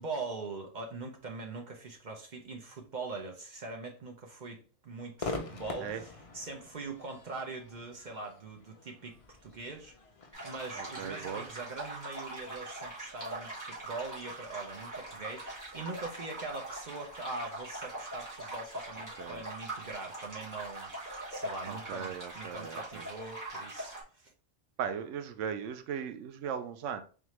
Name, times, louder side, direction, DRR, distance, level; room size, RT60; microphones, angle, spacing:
voice 1, 0.0-9.9 10.4-20.9 21.3-24.3, right 3 dB, 45° right, 2 dB, 0.7 m, -42 dB
Crowd / Fireworks, 5.2-12.5, left 3 dB, 50° left, 0.4 m, -45 dB
sound 1, 10.3-24.0, right 1 dB, 15° right, 1.7 m, -42 dB
voice 2, 10.8-11.5 19.1-19.4 21.7-23.1 24.8-27.0, right 7 dB, 85° right, 9 dB, 0.9 m, -38 dB
3.7 x 3.5 x 3.1 m, 0.38 s
omnidirectional pair, 1.2 m